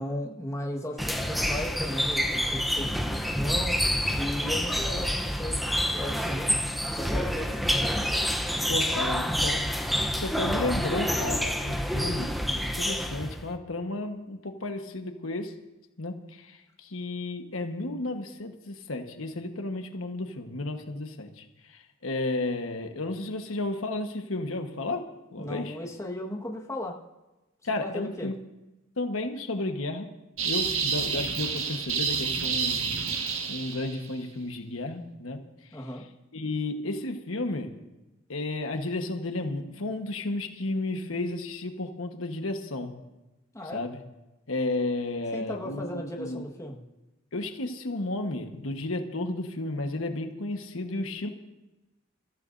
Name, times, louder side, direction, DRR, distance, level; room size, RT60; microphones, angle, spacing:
voice 1, 0.0-3.8 4.1-6.5 6.9-7.9 25.4-27.0 27.8-28.3 35.7-36.0 43.5-43.8 45.3-46.8, left 1 dB, 15° left, -1 dB, 1.5 m, -36 dB
sound 1, 1.0-13.4, equal, ahead, 0.8 m, -28 dB
voice 2, 8.7-9.7 10.1-15.5 16.0-25.8 27.6-28.3 29.0-30.1 30.4-33.0 33.5-35.4 36.3-37.7 38.3-43.0 43.7-44.0 44.5-46.4 47.3-51.3, left 2 dB, 85° left, 5 dB, 1.3 m, -33 dB
sound 2, 30.4-34.1, right 6 dB, 85° right, 1.7 m, -29 dB
25.5 x 14.0 x 2.7 m, 1.0 s
head